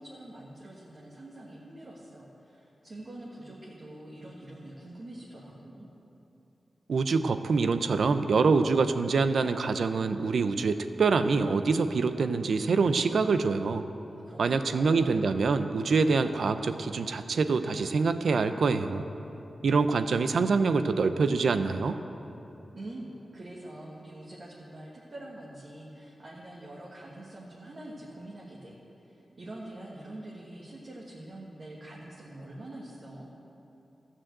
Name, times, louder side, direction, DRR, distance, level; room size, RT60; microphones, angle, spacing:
voice 1, 0.0-5.9 14.0-15.1 22.7-33.3, right 1 dB, 50° right, -5 dB, 1.7 m, -45 dB
voice 2, 6.9-13.8 14.4-19.0 19.6-22.0, right 4 dB, 80° right, 10 dB, 0.5 m, -25 dB
13.5 x 6.3 x 7.8 m, 3.0 s
cardioid pair, 75°, 0 cm